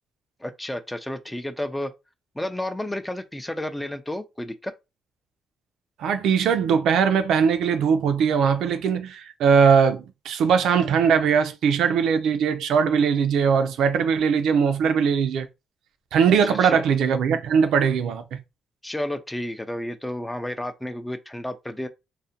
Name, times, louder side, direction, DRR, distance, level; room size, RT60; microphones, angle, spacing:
voice 1, 0.4-1.9 2.4-4.7 16.5-16.8 18.8-21.9, left 1 dB, 10° left, 0.4 m, -31 dB
voice 2, 6.0-15.5 16.1-18.4, right 6 dB, 80° right, 0.4 m, -20 dB
2.4 x 2.1 x 2.7 m
cardioid pair, 90°, 0 cm